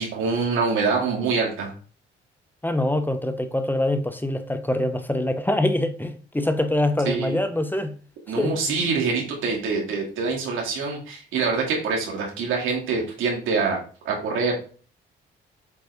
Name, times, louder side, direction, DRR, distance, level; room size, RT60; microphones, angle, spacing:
voice 1, 0.0-1.7 7.1-7.4 8.3-13.8 14.0-14.5, right 4 dB, 85° right, 2.6 m, -25 dB
voice 2, 2.6-7.9 8.4-8.8, left 1 dB, 10° left, 0.7 m, -24 dB
8.2 x 3.9 x 3.5 m
cardioid pair, 90°, 20 cm